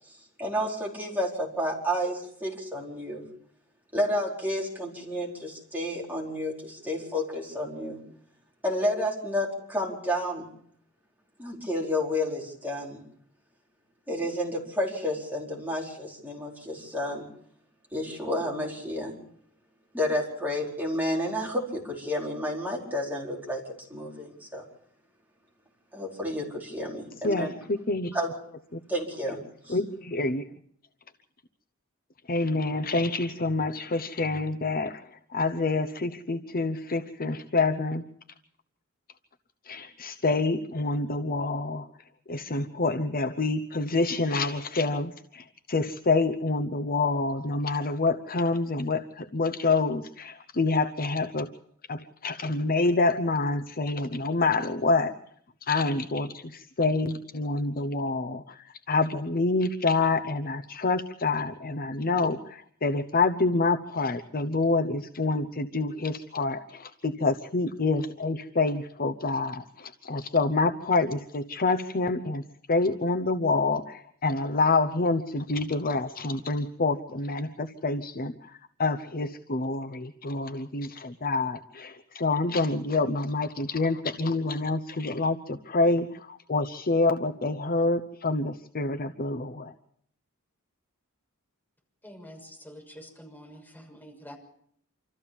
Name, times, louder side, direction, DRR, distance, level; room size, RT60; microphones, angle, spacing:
voice 1, 0.4-3.2 3.9-8.0 8.6-10.5 11.4-13.0 14.1-17.2 17.9-19.2 19.9-23.6 23.9-24.6 25.9-27.6 28.1-28.3 28.9-29.4 29.7-29.8, left 1 dB, 10° right, -2 dB, 4.7 m, -30 dB
voice 2, 27.2-28.1 28.7-28.8 29.2-29.3 29.7-30.6 32.3-38.1 39.6-51.5 51.9-55.2 55.6-89.7, left 3 dB, 45° left, 7 dB, 0.9 m, -27 dB
voice 3, 92.0-94.4, equal, 10° left, 0 dB, 6.4 m, -47 dB
26.5 x 14.0 x 7.2 m, 0.66 s
head